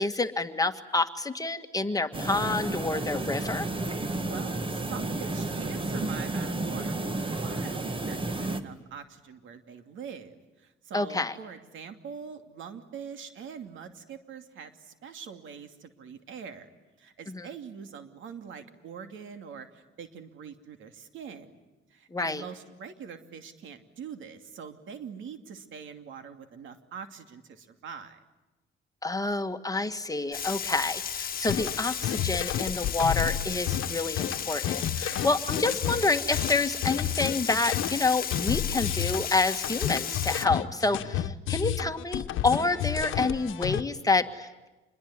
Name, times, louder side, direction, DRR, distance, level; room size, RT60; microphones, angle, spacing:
voice 1, 0.0-3.7 10.9-11.3 17.3-17.5 22.1-22.4 29.0-44.7, left 3 dB, 15° left, 8 dB, 1.7 m, -28 dB
sound 1, 2.1-8.6, right 2 dB, 25° right, 2.0 m, -32 dB
voice 2, 4.2-16.7 17.0-21.6 21.9-28.2 35.1-35.3, right 7 dB, 75° right, 7 dB, 2.7 m, -43 dB
Frying (food), 30.3-40.5, left 8 dB, 45° left, 1.3 m, -34 dB
sound 2, 31.5-43.8, left 11 dB, 80° left, 1.1 m, -31 dB
27.0 x 22.0 x 9.6 m, 1.1 s
cardioid pair, 90°, 20 cm